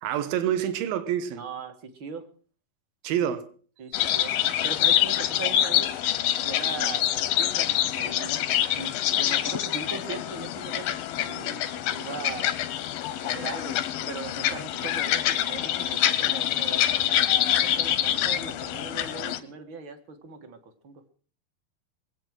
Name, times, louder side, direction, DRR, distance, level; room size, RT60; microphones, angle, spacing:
voice 1, 0.0-1.4 3.0-3.5, right 10 dB, 80° right, 2.9 m, -27 dB
voice 2, 1.4-2.3 3.8-5.9 6.4-8.4 8.8-11.0 11.2-12.5 13.2-13.8 14.1-21.0, right 5 dB, 50° right, 1.5 m, -39 dB
sound 1, 3.9-19.4, left 12 dB, 90° left, 2.8 m, -26 dB
22.0 x 8.4 x 6.2 m
omnidirectional pair, 4.1 m